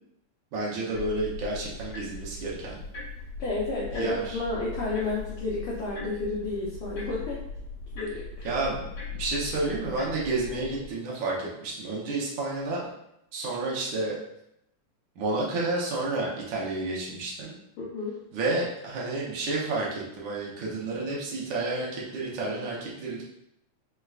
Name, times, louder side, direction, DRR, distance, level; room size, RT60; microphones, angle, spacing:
voice 1, 0.5-2.8 3.9-4.4 8.4-8.9 9.1-12.9 13.3-14.2 15.2-17.5 18.3-23.2, right 2 dB, 75° right, -5 dB, 1.1 m, -30 dB
sound 1, 0.9-10.9, left 3 dB, 60° left, 1.0 m, -39 dB
voice 2, 3.4-7.4 7.9-8.5 17.8-18.2, left 2 dB, 85° left, -5 dB, 1.2 m, -31 dB
4.6 x 3.3 x 2.3 m, 0.81 s
omnidirectional pair, 3.3 m